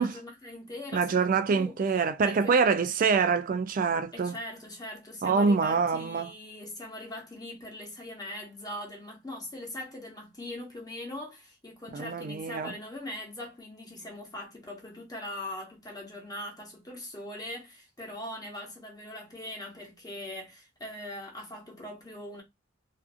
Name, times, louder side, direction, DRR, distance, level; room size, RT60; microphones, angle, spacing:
voice 1, 0.0-1.8 2.2-2.7 4.1-22.4, left 1 dB, 20° left, 0.9 m, -41 dB
voice 2, 0.9-4.4 5.2-6.3 11.9-12.7, right 5 dB, 45° right, 0.3 m, -25 dB
2.5 x 2.5 x 2.4 m
head